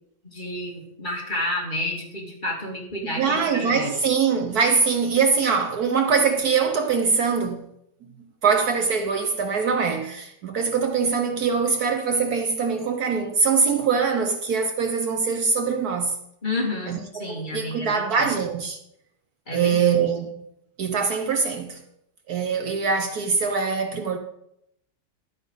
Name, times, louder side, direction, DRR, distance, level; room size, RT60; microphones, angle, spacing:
voice 1, 0.2-3.9 16.4-18.3 19.5-19.8, left 1 dB, 25° left, 2.5 m, -30 dB
voice 2, 3.0-7.7 8.0-8.1 8.4-16.2 16.9-18.8 19.5-20.4 20.8-21.8 22.3-24.2, right 5 dB, 60° right, 1.3 m, -23 dB
12.0 x 9.2 x 3.9 m
omnidirectional pair, 1.9 m